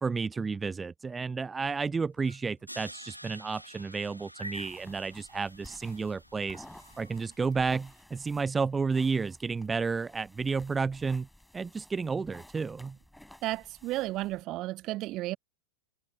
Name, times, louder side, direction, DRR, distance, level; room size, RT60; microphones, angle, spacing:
voice 1, 0.0-6.7 7.0-11.3 11.5-13.0, right 4 dB, 15° right, 0.3 m, -31 dB
sound 1, 1.6-7.6, equal, 90° left, 0.5 m, -51 dB
Crash cymbal, 2.7-7.7, equal, 90° right, 1.5 m, -51 dB
sound 2, 4.5-14.4, left 1 dB, ahead, 4.8 m, -55 dB
voice 2, 13.4-15.4, right 17 dB, 35° right, 0.7 m, -33 dB
figure-of-eight pair, 90°, 0 cm